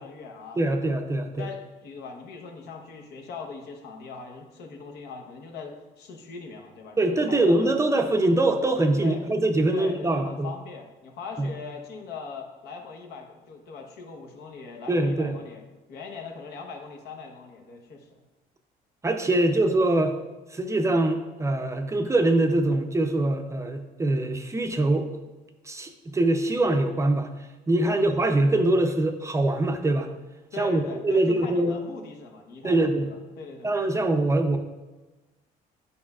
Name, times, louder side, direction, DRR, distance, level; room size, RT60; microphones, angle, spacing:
voice 1, 0.0-0.8 1.2-7.8 9.0-9.3 9.7-15.6 15.9-18.2 27.9-28.1 30.5-34.0, left 4 dB, 75° left, 2 dB, 0.9 m, -41 dB
voice 2, 0.6-1.5 7.0-10.5 11.4-11.5 14.9-15.4 19.0-20.2 20.5-25.1 25.6-27.3 27.7-30.1 30.6-31.7 32.6-33.1 33.6-34.6, right 2 dB, 15° right, 5 dB, 0.5 m, -23 dB
8.6 x 5.4 x 2.4 m, 1.1 s
cardioid pair, 110°, 17 cm